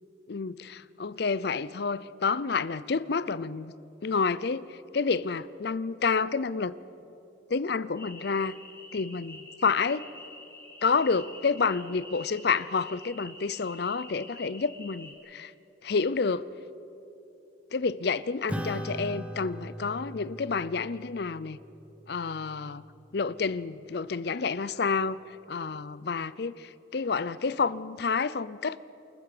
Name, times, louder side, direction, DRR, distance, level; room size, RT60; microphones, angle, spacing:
voice 1, 0.3-3.7 4.0-6.7 7.5-8.6 8.9-10.1 10.8-15.5 15.8-16.5 17.7-21.6 22.1-22.8 23.1-28.8, left 4 dB, 55° left, 18 dB, 0.5 m, -29 dB
sound 1, 8.0-15.1, left 2 dB, 15° left, 2.0 m, -47 dB
Acoustic guitar / Strum, 18.5-23.3, equal, 5° right, 1.0 m, -40 dB
28.5 x 14.0 x 6.7 m, 3.0 s
head